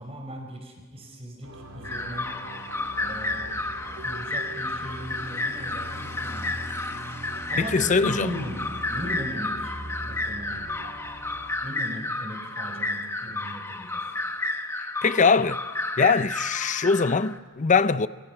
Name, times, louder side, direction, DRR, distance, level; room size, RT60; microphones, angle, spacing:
voice 1, 0.0-2.3 3.0-3.6 3.9-6.5 7.5-8.6 8.9-9.8 10.0-10.7 11.6-14.0, equal, 30° right, 4.2 m, -37 dB
sound 1, 1.4-11.5, right 1 dB, 90° right, 3.5 m, -41 dB
sound 2, 1.8-17.4, left 2 dB, 10° left, 1.1 m, -32 dB
voice 2, 7.6-8.3 15.0-15.6 16.0-18.1, left 5 dB, 35° left, 0.6 m, -22 dB
25.5 x 25.0 x 5.9 m
head